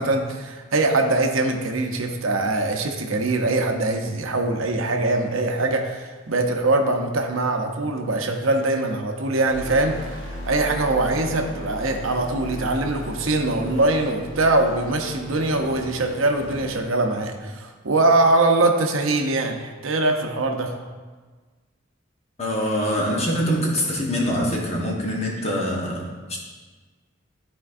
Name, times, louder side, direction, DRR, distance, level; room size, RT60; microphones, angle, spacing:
voice 1, 0.0-20.7, right 2 dB, 80° right, 4 dB, 0.7 m, -22 dB
sound 1, 9.5-16.8, left 1 dB, 70° left, 1.4 m, -36 dB
voice 2, 22.4-26.4, equal, 30° left, -2 dB, 1.1 m, -24 dB
12.0 x 4.4 x 2.5 m, 1.4 s
head